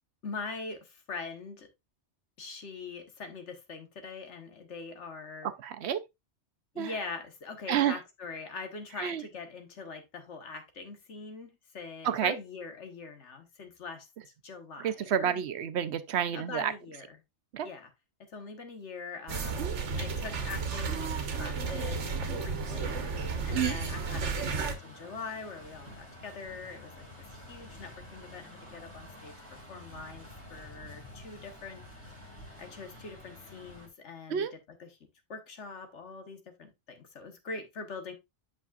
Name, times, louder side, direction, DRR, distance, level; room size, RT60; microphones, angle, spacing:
voice 1, 0.2-1.7 2.4-5.5 6.7-14.1 14.4-15.4 16.3-17.2 17.6-17.9 18.3-19.7 20.0-23.0 23.5-27.1 27.3-29.3 29.7-31.8 32.6-35.0 35.3-38.1, left 4 dB, 80° left, 1.6 m, -43 dB
voice 2, 5.4-6.0 6.8-6.9 7.7-7.9 9.0-9.2 12.0-12.3 14.8-16.7 17.5-17.7 19.6-19.8 23.5-23.8 34.3-34.5, right 9 dB, 70° right, 0.9 m, -29 dB
sound 1, 19.3-24.7, right 4 dB, 90° right, 1.3 m, -33 dB
Truck, 22.8-33.9, left 1 dB, 10° left, 2.3 m, -49 dB
8.4 x 5.7 x 2.4 m
omnidirectional pair, 1.2 m